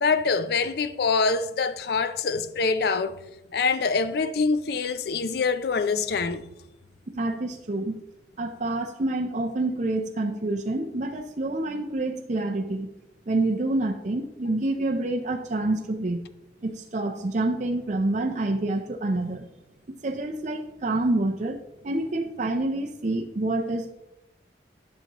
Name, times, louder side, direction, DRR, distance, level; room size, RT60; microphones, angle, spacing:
voice 1, 0.0-3.2 3.5-6.5, left 4 dB, 55° left, 0.4 m, -25 dB
voice 2, 7.1-8.0 8.4-12.9 13.3-16.2 16.6-19.4 19.9-23.9, right 2 dB, 40° right, 0.5 m, -27 dB
11.0 x 6.6 x 2.9 m
head